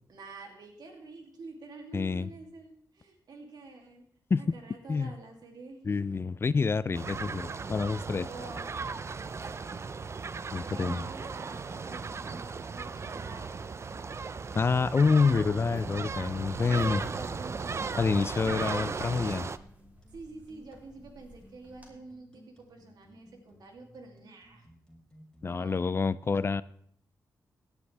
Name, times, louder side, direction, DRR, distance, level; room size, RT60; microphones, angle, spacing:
voice 1, 0.1-4.0 4.4-6.1 8.2-8.7 9.3-9.9 10.4-13.7 16.4-19.2 20.1-24.7 25.4-25.8, right 3 dB, 75° right, 2 dB, 2.7 m, -48 dB
voice 2, 1.9-2.3 4.3-4.6 4.9-5.1 5.9-8.3 10.5-11.0 14.5-17.0 18.0-19.5 25.4-26.6, left 4 dB, 35° left, 18 dB, 0.4 m, -27 dB
sound 1, 6.9-19.6, right 4 dB, 40° right, 0.6 m, -36 dB
sound 2, 13.1-25.5, equal, 10° left, 3.4 m, -58 dB
sound 3, 15.2-21.9, equal, 25° right, 3.4 m, -48 dB
16.5 x 9.8 x 3.4 m, 0.65 s
cardioid pair, 85°, 7 cm